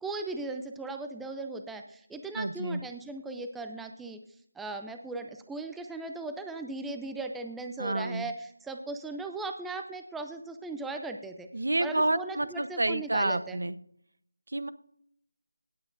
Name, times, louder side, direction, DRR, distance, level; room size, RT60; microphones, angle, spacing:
voice 1, 0.0-4.2 4.6-11.5 11.8-13.6, right 3 dB, 5° right, 5 dB, 0.4 m, -38 dB
voice 2, 2.3-2.8 7.8-8.3 11.5-13.8 14.5-14.7, right 2 dB, 75° right, 15 dB, 0.8 m, -29 dB
17.0 x 8.9 x 2.5 m, 0.68 s
figure-of-eight pair, 170°, 0 cm